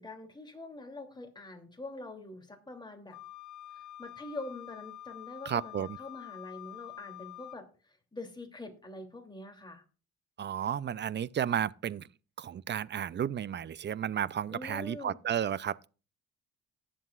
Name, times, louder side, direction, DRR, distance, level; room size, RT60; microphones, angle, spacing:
voice 1, 0.0-3.2 3.7-9.8 14.5-15.2, left 2 dB, 15° left, 2.9 m, -45 dB
Wind instrument woodwind instrument, 3.1-7.6, left 15 dB, 70° left, 0.7 m, -47 dB
voice 2, 5.5-6.0 10.4-12.1 12.4-15.9, right 9 dB, 35° right, 0.5 m, -33 dB
18.5 x 7.7 x 2.4 m
cardioid pair, 90°, 30 cm